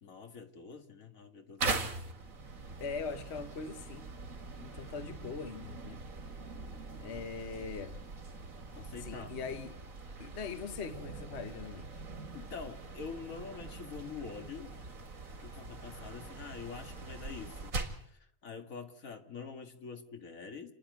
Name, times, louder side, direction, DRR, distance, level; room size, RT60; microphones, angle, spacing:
voice 1, 0.0-2.0 7.1-7.7 8.8-9.3 12.3-14.8 15.4-17.8 18.0-20.7, left 5 dB, 75° left, 2.1 m, -46 dB
sound 1, 1.6-18.1, right 3 dB, 85° right, 2.5 m, -42 dB
voice 2, 2.8-4.1 4.6-6.0 7.0-8.0 9.0-9.8 10.2-11.9, left 5 dB, 55° left, 1.3 m, -41 dB
29.0 x 10.5 x 9.2 m
omnidirectional pair, 1.4 m